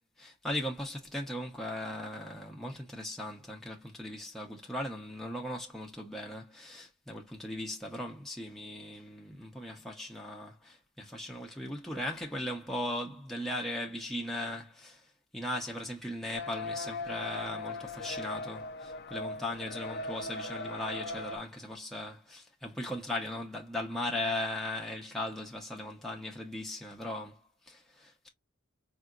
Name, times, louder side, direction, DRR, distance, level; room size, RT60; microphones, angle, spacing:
voice 1, 0.2-28.3, left 1 dB, ahead, 0.9 m, -38 dB
sound 1, 16.3-21.4, left 2 dB, 55° left, 0.6 m, -39 dB
5.0 x 2.8 x 2.4 m
head